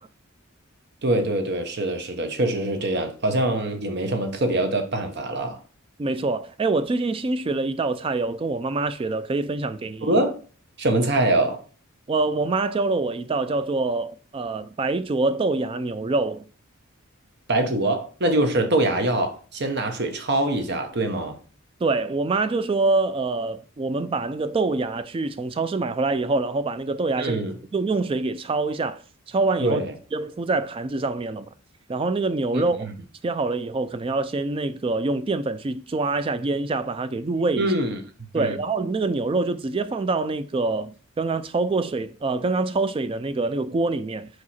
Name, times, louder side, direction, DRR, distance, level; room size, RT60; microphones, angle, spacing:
voice 1, 1.0-5.6 10.0-10.4 10.8-11.6 17.5-21.4 27.2-27.5 29.6-29.9 32.5-32.9 37.6-38.0 38.3-38.6, right 1 dB, 50° right, 1.0 m, -24 dB
voice 2, 6.0-10.1 12.1-16.5 21.8-27.4 27.7-29.0 29.3-29.8 30.1-31.5 31.9-32.8 33.2-37.7 38.3-44.3, right 3 dB, 25° right, 0.3 m, -25 dB
4.8 x 4.7 x 4.2 m
head